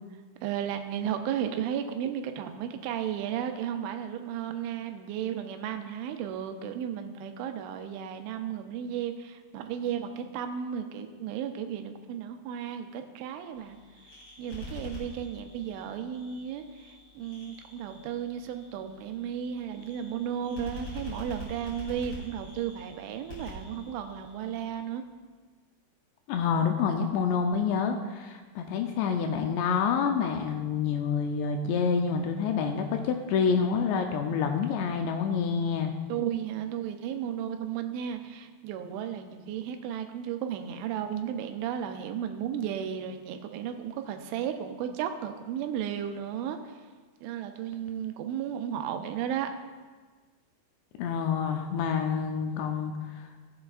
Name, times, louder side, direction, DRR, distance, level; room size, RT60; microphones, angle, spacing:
voice 1, 0.4-13.8 14.4-16.7 17.1-25.0 36.1-46.6 47.2-49.5, right 9 dB, 85° right, 6 dB, 3.1 m, -34 dB
sound 1, 13.5-24.8, left 1 dB, 40° left, 3.9 m, -45 dB
voice 2, 26.3-35.9 51.0-52.9, left 6 dB, 80° left, 4 dB, 2.6 m, -27 dB
16.5 x 7.7 x 2.4 m, 1.4 s
omnidirectional pair, 5.3 m